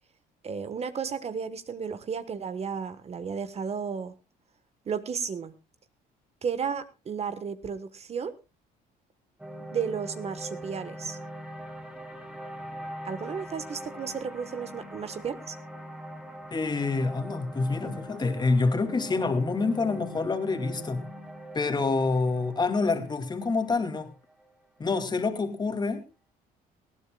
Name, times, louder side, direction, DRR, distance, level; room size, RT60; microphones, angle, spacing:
voice 1, 0.4-4.1 4.9-5.5 6.4-8.4 9.7-11.2 13.0-15.5, right 6 dB, 40° right, 12 dB, 1.3 m, -33 dB
sound 1, 9.4-25.7, equal, 5° right, 2.7 m, -42 dB
voice 2, 16.5-21.0 21.5-24.1 24.8-26.0, left 3 dB, 25° left, 7 dB, 2.3 m, -27 dB
19.5 x 15.5 x 2.3 m, 0.28 s
cardioid pair, 110°, 17 cm